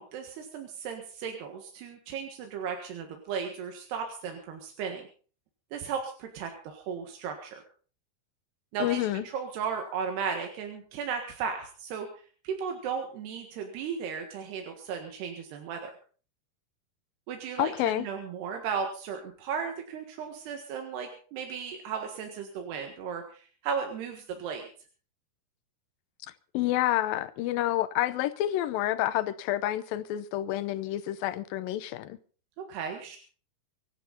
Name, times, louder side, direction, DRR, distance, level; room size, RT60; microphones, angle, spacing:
voice 1, 0.0-5.1 5.7-7.6 8.7-12.1 12.4-15.9 17.3-24.7 32.6-33.2, right 6 dB, 85° right, 3.8 m, -35 dB
voice 2, 8.8-9.2 17.6-18.1 26.5-32.2, left 14 dB, 75° left, 2.4 m, -29 dB
24.5 x 11.5 x 4.1 m
omnidirectional pair, 4.6 m